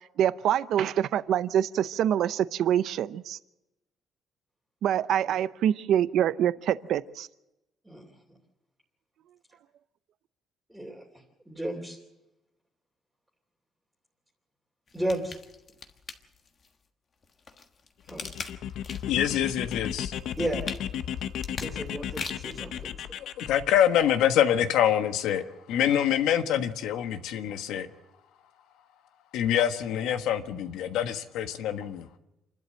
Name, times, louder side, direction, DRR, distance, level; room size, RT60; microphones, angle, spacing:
voice 1, 0.2-3.4 4.8-7.3, right 10 dB, 65° right, 15 dB, 0.6 m, -25 dB
voice 2, 10.7-12.0 14.9-15.4 18.1-18.3 20.4-20.8 21.6-23.1, right 1 dB, 5° right, -3 dB, 2.8 m, -34 dB
sound 1, 14.9-16.7 17.2-19.2 19.6-22.6 23.2-23.3, left 4 dB, 35° left, 1.4 m, -41 dB
sound 2, 18.1-24.2, left 9 dB, 65° left, 0.8 m, -35 dB
voice 3, 19.1-20.1 23.2-27.9 29.3-32.1, left 10 dB, 90° left, 8 dB, 1.3 m, -25 dB
28.0 x 12.0 x 7.7 m, 0.95 s
cardioid pair, 155°, 0 cm